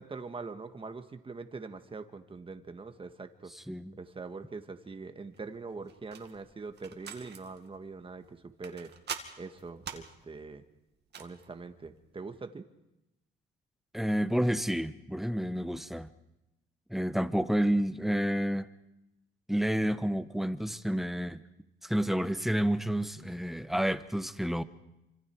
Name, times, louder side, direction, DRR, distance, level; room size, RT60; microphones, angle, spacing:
voice 1, 0.0-3.5 4.0-8.9 9.4-10.6 11.2-12.7, right 4 dB, 25° right, 1.7 m, -43 dB
voice 2, 3.5-3.9 13.9-16.1 16.9-18.7 19.5-21.4 21.8-24.6, equal, ahead, 1.1 m, -30 dB
sound 1, 5.2-12.2, right 7 dB, 60° right, 2.3 m, -47 dB
27.0 x 26.0 x 4.7 m
cardioid pair, 90°, 20 cm